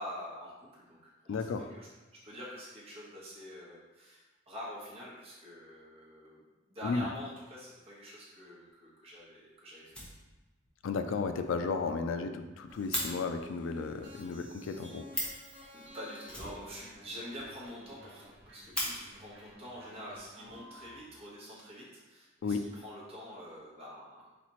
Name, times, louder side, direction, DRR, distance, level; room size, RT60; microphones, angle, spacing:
voice 1, 0.0-1.9 2.2-6.4 6.7-9.9 15.7-24.3, equal, 30° right, -6 dB, 1.4 m, -46 dB
voice 2, 1.3-1.7 6.8-7.1 10.8-15.1 22.4-22.7, left 4 dB, 80° left, 8 dB, 0.4 m, -34 dB
Fire, 8.7-8.8 9.1-9.2 9.5-9.6 9.8-10.7 11.0-11.1 11.4-11.5 11.8-11.9 12.1-13.1 14.8-14.9 15.1-15.5 16.3-17.2 17.5-17.6 17.9-18.0 18.4-18.9 19.9-20.0 20.7-21.3, equal, 5° left, 1.0 m, -38 dB
sound 1, 12.7-21.0, left 1 dB, 65° right, 1.1 m, -54 dB
4.1 x 4.1 x 3.0 m, 1.1 s
head